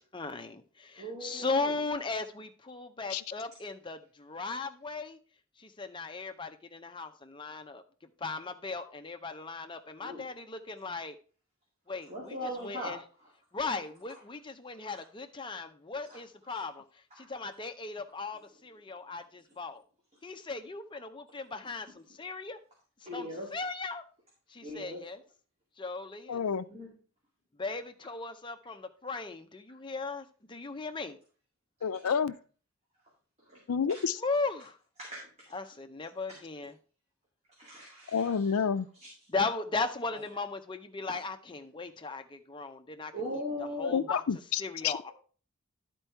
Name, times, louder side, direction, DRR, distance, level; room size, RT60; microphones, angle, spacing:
voice 1, 0.1-5.2 5.6-7.8 8.2-11.2 11.9-12.4 12.6-13.0 13.5-16.8 17.2-19.8 20.2-22.6 23.1-24.0 24.5-25.2 25.8-26.4 27.6-31.2 34.2-34.8 35.5-36.7 39.3-43.1 43.8-44.2 44.6-45.1, left 3 dB, 20° left, 7 dB, 0.6 m, -37 dB
voice 2, 1.0-1.8 10.0-10.2 12.1-13.3 14.8-15.0 16.0-16.2 16.5-16.6 17.2-17.3 21.9-22.0 23.1-23.5 24.6-25.0 26.7-26.9 33.5-33.6 33.9-34.0 35.0-35.2 36.3-36.4 37.6-38.6 39.0-39.1 40.1-40.2 41.1-41.2 43.1-44.1 45.1-45.2, equal, 30° right, -4 dB, 2.2 m, -40 dB
voice 3, 26.3-26.7 31.8-32.3 33.7-34.2 38.1-38.9 43.8-44.9, left 6 dB, 85° left, 14 dB, 0.5 m, -29 dB
10.5 x 4.5 x 4.5 m, 0.39 s
head